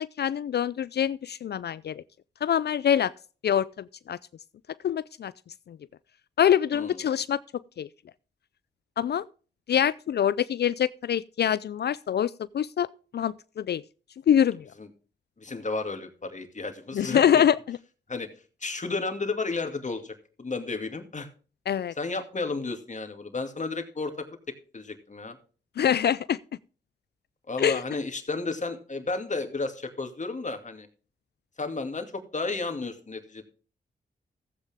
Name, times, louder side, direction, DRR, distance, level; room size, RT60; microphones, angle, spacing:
voice 1, 0.0-2.0 2.4-3.1 3.4-4.2 4.8-5.3 5.7-5.8 6.4-7.4 7.8-7.9 9.0-9.2 9.7-12.9 13.1-13.8 14.3-14.7 16.9-17.8 21.7-21.9 25.8-26.4 27.6-27.8, left 9 dB, 60° left, 0.4 m, -25 dB
voice 2, 15.4-17.4 18.1-18.3 18.6-21.3 22.0-24.3 24.7-25.4 27.5-30.9 31.6-33.4, left 3 dB, 40° left, 2.4 m, -32 dB
14.5 x 8.4 x 3.6 m
cardioid pair, 50°, 19 cm